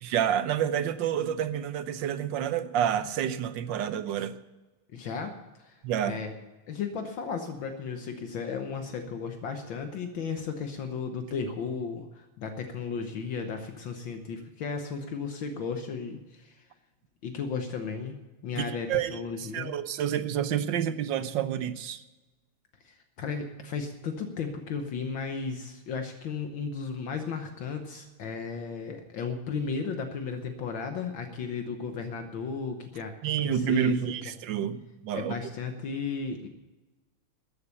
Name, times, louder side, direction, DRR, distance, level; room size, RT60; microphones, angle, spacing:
voice 1, 0.0-4.4 5.8-6.2 18.6-22.0 33.2-35.3, right 9 dB, 70° right, 12 dB, 1.3 m, -29 dB
voice 2, 4.9-5.3 5.6-6.3 6.7-16.6 17.2-18.2 18.4-19.7 22.8-33.1 33.4-34.0 35.1-36.5, left 5 dB, 65° left, 6 dB, 1.7 m, -34 dB
14.0 x 9.8 x 6.9 m, 1.2 s
omnidirectional pair, 2.4 m